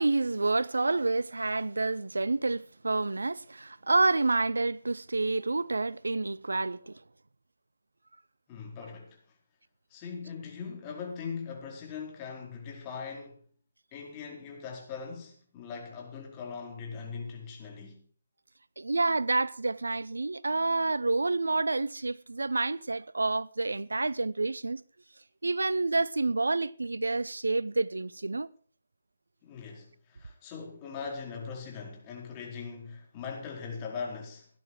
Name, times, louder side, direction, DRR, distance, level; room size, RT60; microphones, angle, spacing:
voice 1, 0.0-7.0 18.8-24.8 25.4-28.5, right 3 dB, 75° right, 0.6 m, -28 dB
voice 2, 8.5-9.2 9.9-13.4 13.9-18.0 29.4-34.5, left 5 dB, 25° left, 4.4 m, -40 dB
17.0 x 12.0 x 4.7 m
figure-of-eight pair, 150°, 0 cm